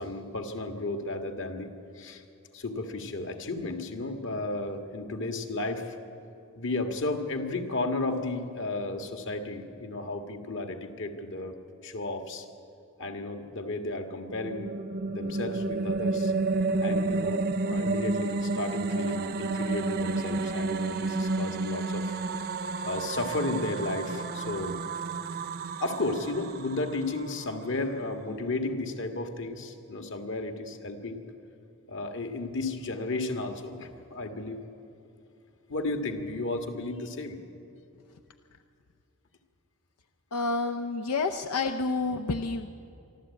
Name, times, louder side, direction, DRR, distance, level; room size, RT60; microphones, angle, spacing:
voice 1, 0.0-2.2 2.5-6.0 6.5-11.6 11.8-12.5 13.0-14.7 15.1-16.3 16.8-22.2 22.8-24.8 25.8-31.2 31.9-34.6 35.7-37.4 41.1-41.2, left 2 dB, 60° left, 5 dB, 1.7 m, -33 dB
sound 1, 14.1-27.4, right 3 dB, 45° right, 0.7 m, -30 dB
voice 2, 40.3-42.7, left 3 dB, 90° left, 6 dB, 0.7 m, -29 dB
24.5 x 12.5 x 8.5 m, 2.6 s
head